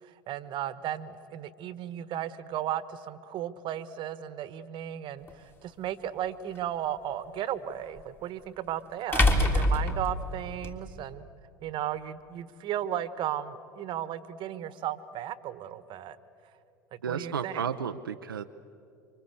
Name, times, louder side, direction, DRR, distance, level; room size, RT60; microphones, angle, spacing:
voice 1, 0.0-11.2 11.6-16.2 16.9-17.6, right 11 dB, 45° right, 14 dB, 1.3 m, -35 dB
sound 1, 5.3-5.4 8.0-8.1 9.1-10.7, left 1 dB, 20° left, 3.4 m, -24 dB
voice 2, 17.0-18.4, right 7 dB, 85° right, 7 dB, 0.7 m, -32 dB
28.0 x 25.0 x 8.1 m, 2.7 s
hypercardioid pair, 85°, 11 cm